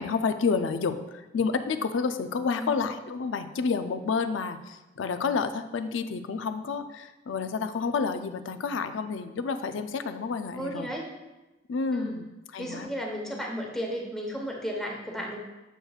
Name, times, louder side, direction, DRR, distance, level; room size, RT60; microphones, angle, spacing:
voice 1, 0.0-10.9 11.7-12.3 12.5-12.9, left 5 dB, 85° left, 10 dB, 0.4 m, -29 dB
voice 2, 10.5-11.1 11.9-12.2 12.6-15.4, equal, ahead, -1 dB, 0.9 m, -34 dB
7.7 x 6.3 x 2.4 m, 1.1 s
head